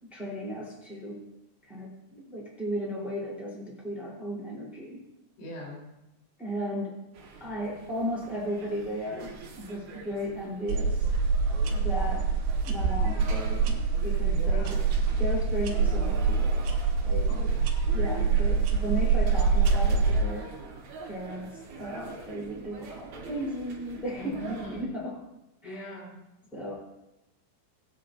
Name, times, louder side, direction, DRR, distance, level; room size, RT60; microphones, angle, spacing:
voice 1, 0.0-1.2 1.6-5.0 6.4-7.0 7.4-11.1 11.7-12.2 12.6-14.8 15.2-16.7 17.0-17.4 17.9-20.5 21.0-25.1 25.6-25.9 26.5-26.7, equal, ahead, -4 dB, 2.2 m, -35 dB
voice 2, 5.4-5.8 14.3-14.9 17.3-17.7 24.1-24.9 25.6-26.1, equal, 85° left, -4 dB, 6.3 m, -40 dB
sound 1, 7.1-24.8, right 4 dB, 60° right, 2.0 m, -44 dB
sound 2, 10.7-20.2, right 5 dB, 80° right, 3.5 m, -25 dB
19.0 x 9.4 x 2.6 m, 0.94 s
omnidirectional pair, 5.7 m